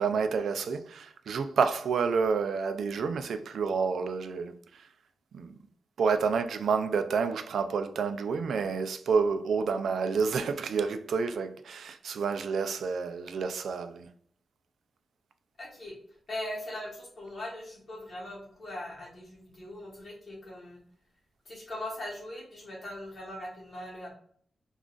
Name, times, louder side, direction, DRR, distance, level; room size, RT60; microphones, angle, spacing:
voice 1, 0.0-4.8 5.3-5.5 6.0-14.1, right 5 dB, 75° right, 0.3 m, -29 dB
voice 2, 15.6-15.9 16.3-20.8 21.4-24.1, left 1 dB, 40° left, 1.3 m, -40 dB
3.7 x 2.3 x 2.4 m
wide cardioid pair, 125°, 0 cm